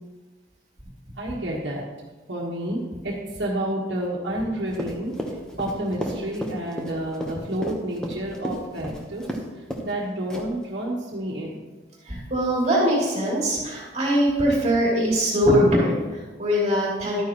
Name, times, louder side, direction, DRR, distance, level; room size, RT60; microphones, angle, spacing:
voice 1, 1.2-1.8 2.3-5.1 5.6-9.2 9.8-11.6, right 1 dB, 75° right, -4 dB, 1.5 m, -29 dB
Run, 4.7-9.4 9.7-9.9 10.3-10.6, equal, 5° left, 1.0 m, -32 dB
voice 2, 12.0-17.2, equal, 35° right, -5 dB, 3.1 m, -22 dB
12.5 x 9.4 x 3.1 m, 1.3 s
head